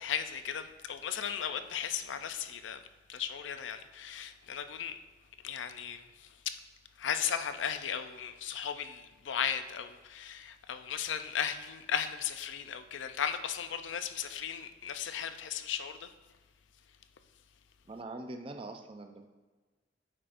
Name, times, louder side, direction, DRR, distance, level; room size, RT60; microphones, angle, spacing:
voice 1, 0.0-2.8 3.1-5.0 5.4-6.0 6.5-6.6 7.0-16.1, left 8 dB, 85° left, 0.5 m, -36 dB
voice 2, 17.9-19.3, right 2 dB, 30° right, 0.4 m, -43 dB
8.7 x 5.0 x 2.5 m
head